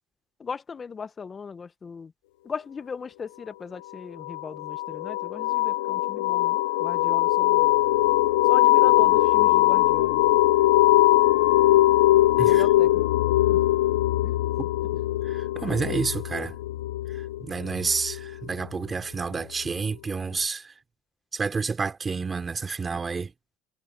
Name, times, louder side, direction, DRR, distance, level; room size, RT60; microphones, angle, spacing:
voice 1, 0.4-2.1 2.4-7.7 8.4-10.2 12.4-13.0 13.5-13.6 14.2-14.4, left 5 dB, 25° left, 1.4 m, -38 dB
sound 1, 4.2-18.7, left 16 dB, 90° left, 0.8 m, -21 dB
voice 2, 15.2-16.6 17.1-20.7 21.3-23.3, right 4 dB, 20° right, 3.5 m, -29 dB
supercardioid pair, 110°, 0 cm